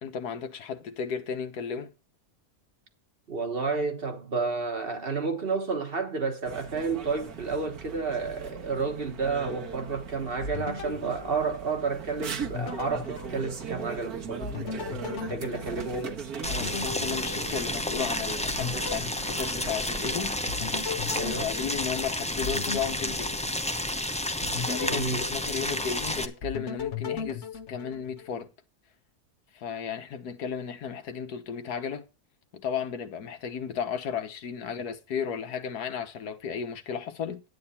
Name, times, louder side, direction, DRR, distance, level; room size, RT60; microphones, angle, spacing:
voice 1, 0.0-1.9 15.1-16.1 16.5-20.4 21.2-23.4 24.6-28.5 29.5-32.0 32.5-37.4, left 7 dB, 90° left, 1.7 m, -34 dB
voice 2, 3.3-16.2 21.1-21.5 24.9-25.3, right 4 dB, 40° right, 1.4 m, -31 dB
sound 1, 6.4-20.8, right 6 dB, 75° right, 1.9 m, -40 dB
sound 2, 10.4-12.0 12.4-14.0 14.4-18.1 18.5-20.1 20.5-23.9 24.4-26.0 26.4-28.4, left 5 dB, 50° left, 1.3 m, -37 dB
Boiling, 16.4-26.2, left 1 dB, 10° left, 0.3 m, -31 dB
10.5 x 8.9 x 4.3 m
omnidirectional pair, 1.6 m